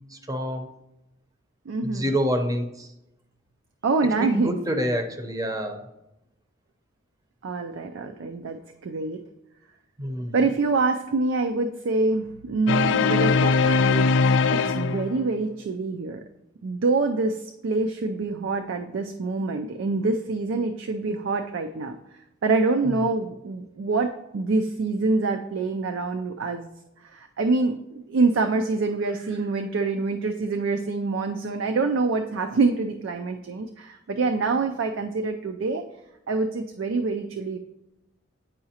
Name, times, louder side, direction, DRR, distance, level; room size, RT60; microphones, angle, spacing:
voice 1, 0.1-0.7 1.8-2.9 4.2-5.8 10.0-10.4 22.9-23.0, equal, 20° right, 6 dB, 0.6 m, -27 dB
voice 2, 1.7-2.1 3.8-4.5 7.4-9.2 10.3-14.2 14.5-16.2 16.6-22.0 22.4-26.7 27.0-35.8 36.3-37.6, right 3 dB, 75° right, 5 dB, 0.4 m, -26 dB
sound 1, 12.7-15.4, left 4 dB, 70° left, 0.3 m, -21 dB
8.9 x 4.7 x 2.8 m, 0.89 s
head